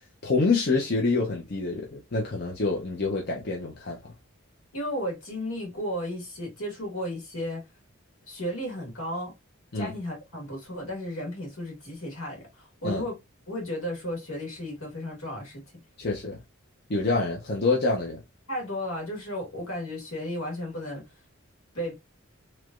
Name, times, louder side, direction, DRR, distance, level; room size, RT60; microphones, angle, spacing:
voice 1, 0.2-4.1 9.7-9.9 12.8-13.0 16.0-16.4 16.9-18.2, left 3 dB, 50° left, 0.7 m, -26 dB
voice 2, 4.7-7.6 8.3-9.3 9.7-13.2 13.5-15.6 18.5-21.0 21.7-22.0, equal, 80° left, 1.8 m, -34 dB
3.2 x 3.0 x 2.3 m
head